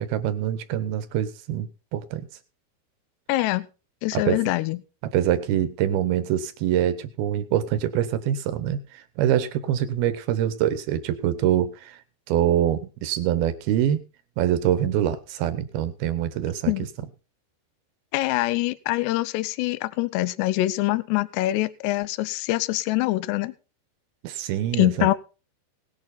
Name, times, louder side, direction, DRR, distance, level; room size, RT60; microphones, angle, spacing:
voice 1, 0.0-2.3 4.1-4.4 5.1-12.0 12.3-14.0 14.4-16.7 24.2-25.1, right 11 dB, 70° right, 12 dB, 2.5 m, -25 dB
voice 2, 3.3-3.7 4.0-4.8 16.7-16.9 18.1-23.5 24.8-25.1, left 18 dB, 80° left, 16 dB, 2.7 m, -24 dB
19.0 x 8.9 x 4.1 m, 0.34 s
omnidirectional pair, 5.3 m